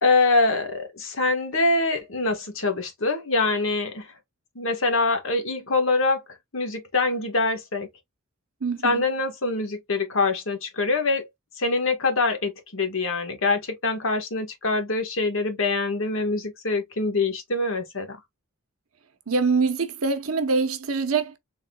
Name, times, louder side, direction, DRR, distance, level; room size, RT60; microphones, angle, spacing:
voice 1, 0.0-4.1 4.5-6.2 6.5-7.9 8.8-11.3 11.6-18.2, left 3 dB, 65° left, 1.3 m, -24 dB
voice 2, 8.6-9.0 19.3-21.4, right 4 dB, 80° right, 0.9 m, -24 dB
3.7 x 3.6 x 2.2 m
head